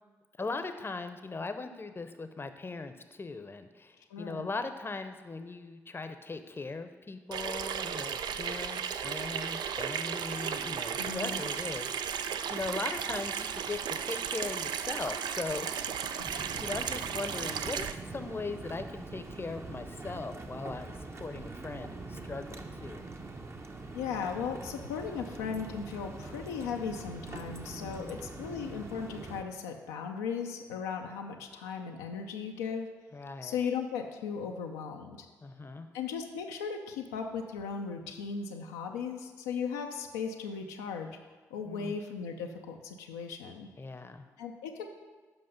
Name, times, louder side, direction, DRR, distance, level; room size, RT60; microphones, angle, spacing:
voice 1, 0.4-11.9 12.1-23.0 27.8-28.2 33.1-33.6 35.4-35.9 41.7-41.9 43.8-44.3, left 3 dB, 30° left, 9 dB, 0.7 m, -39 dB
voice 2, 4.1-4.5 10.9-11.4 23.9-32.9 33.4-35.3 35.9-41.2 41.5-43.7 44.4-44.9, left 6 dB, 90° left, 2 dB, 0.5 m, -37 dB
Water tap faucet / Sink (filling or washing), 7.3-17.9, right 8 dB, 65° right, 0.4 m, -35 dB
sound 1, 16.2-29.4, right 3 dB, 35° right, 0.9 m, -43 dB
7.8 x 5.4 x 5.3 m, 1.4 s
hypercardioid pair, 40°, 8 cm